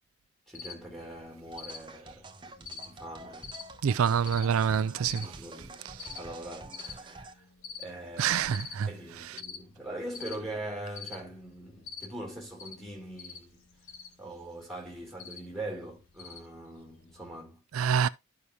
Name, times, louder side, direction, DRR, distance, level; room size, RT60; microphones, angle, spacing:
Cricket, 0.5-17.3, left 6 dB, 75° left, 1.6 m, -48 dB
voice 1, 0.5-3.6 4.3-5.8 6.2-7.4 7.8-8.4 8.9-13.6 14.2-17.6, right 1 dB, ahead, 2.6 m, -42 dB
sound 1, 1.5-7.3, right 3 dB, 20° right, 0.7 m, -48 dB
voice 2, 3.8-5.2 8.2-8.9 17.7-18.1, right 7 dB, 80° right, 0.4 m, -26 dB
12.5 x 4.9 x 2.7 m
head